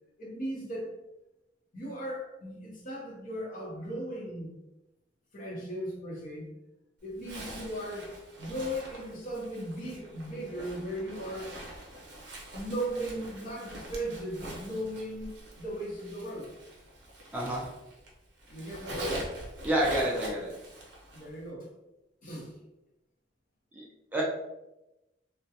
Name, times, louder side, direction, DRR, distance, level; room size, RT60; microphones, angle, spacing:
voice 1, 0.2-0.9 1.7-4.5 5.3-6.5 7.0-8.1 8.4-11.5 12.5-16.5 18.5-19.3 21.1-21.7 22.2-22.6, right 1 dB, 45° left, -3 dB, 0.7 m, -37 dB
Zipper (clothing), 7.2-18.1 18.4-21.4, equal, 65° right, 0.7 m, -43 dB
voice 2, 17.3-17.7 19.6-20.5 23.7-23.8 24.1-24.2, right 1 dB, 10° right, -5 dB, 0.4 m, -28 dB
2.3 x 2.1 x 2.7 m, 0.94 s
head